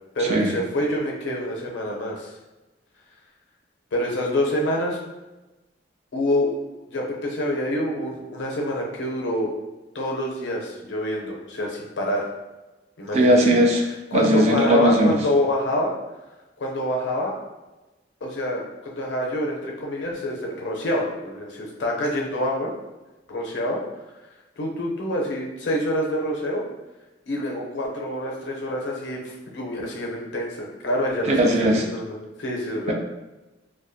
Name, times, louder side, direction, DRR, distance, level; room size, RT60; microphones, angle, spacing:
voice 1, 0.1-2.3 3.9-5.0 6.1-6.5 6.9-9.5 9.9-12.3 13.0-13.4 14.1-16.0 16.6-17.4 18.2-22.7 23.3-23.8 24.6-26.6 27.3-32.9, left 1 dB, 85° left, -1 dB, 0.5 m, -26 dB
voice 2, 13.1-13.8 14.1-15.2 31.4-31.8, right 1 dB, 35° right, 1 dB, 0.3 m, -18 dB
2.4 x 2.2 x 2.6 m, 1.1 s
head